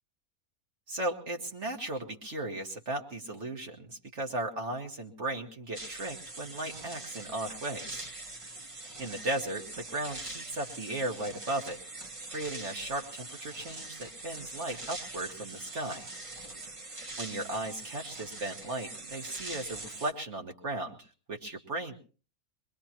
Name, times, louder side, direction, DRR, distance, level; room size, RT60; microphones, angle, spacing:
voice 1, 0.9-8.1 9.0-11.8 12.3-16.1 17.2-21.0 21.3-21.9, right 1 dB, 55° right, 2 dB, 1.9 m, -36 dB
sound 1, 5.7-20.1, right 2 dB, 25° right, 1.0 m, -43 dB
23.5 x 21.0 x 2.9 m, 0.38 s
omnidirectional pair, 1.5 m